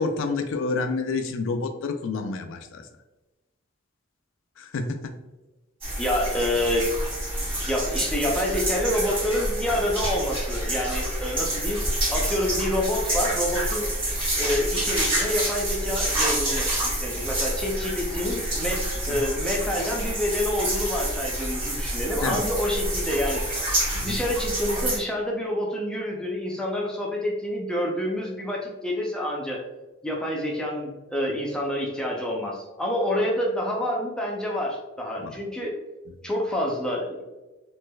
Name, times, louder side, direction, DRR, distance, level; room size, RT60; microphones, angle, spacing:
voice 1, 0.0-2.8 4.6-5.2 19.1-19.2 22.2-22.4 23.9-24.2 35.2-35.4 36.1-36.2, left 3 dB, 65° left, 7 dB, 0.4 m, -29 dB
sound 1, 5.8-25.0, right 1 dB, 25° right, 1.1 m, -28 dB
voice 2, 6.0-6.9 7.7-11.8 12.1-13.9 14.4-23.4 24.0-29.6 30.0-35.7 36.2-37.2, left 1 dB, 5° left, -2 dB, 0.5 m, -27 dB
3.2 x 3.0 x 2.2 m, 1.1 s
head